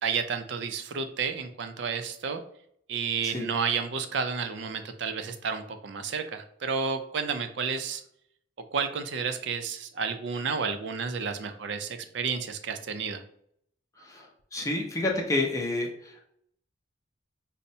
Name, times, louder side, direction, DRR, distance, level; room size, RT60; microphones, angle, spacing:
voice 1, 0.0-2.4 2.9-8.0 8.7-13.2, right 5 dB, 60° right, 7 dB, 0.4 m, -31 dB
voice 2, 14.0-16.3, left 2 dB, 15° left, 0 dB, 0.5 m, -30 dB
5.3 x 2.1 x 2.7 m, 0.68 s
head